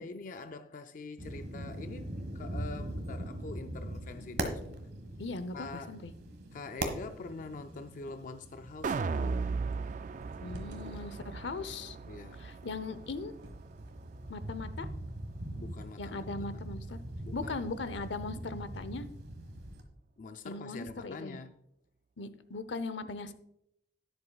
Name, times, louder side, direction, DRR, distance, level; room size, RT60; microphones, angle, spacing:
voice 1, 0.0-4.9 5.5-6.0 6.5-9.5 12.1-12.5 15.5-16.3 16.5-16.6 17.2-17.7 20.2-21.5, left 3 dB, 45° left, 0.4 m, -45 dB
sound 1, 1.2-19.8, right 1 dB, 60° right, 1.5 m, -42 dB
voice 2, 5.2-6.1 10.4-12.0 12.4-13.3 14.3-14.9 16.0-17.0 17.3-19.1 20.4-21.4 22.2-23.3, left 3 dB, 80° left, 0.7 m, -39 dB
sound 2, 8.8-15.1 15.4-15.5, right 4 dB, 45° right, 0.3 m, -37 dB
sound 3, 9.7-11.7 13.0-14.0, right 1 dB, 80° right, 1.6 m, -48 dB
12.0 x 10.5 x 2.3 m
head